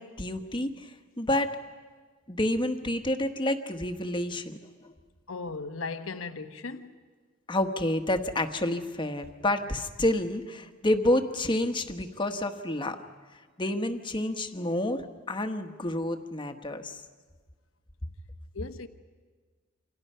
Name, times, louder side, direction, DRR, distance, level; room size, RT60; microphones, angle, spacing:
voice 1, 0.0-1.6 2.3-4.9 7.5-13.0 13.6-17.0, left 1 dB, 25° left, 1.3 m, -29 dB
voice 2, 5.3-6.9 18.5-18.9, left 4 dB, 75° left, 1.1 m, -37 dB
29.0 x 26.5 x 5.7 m
head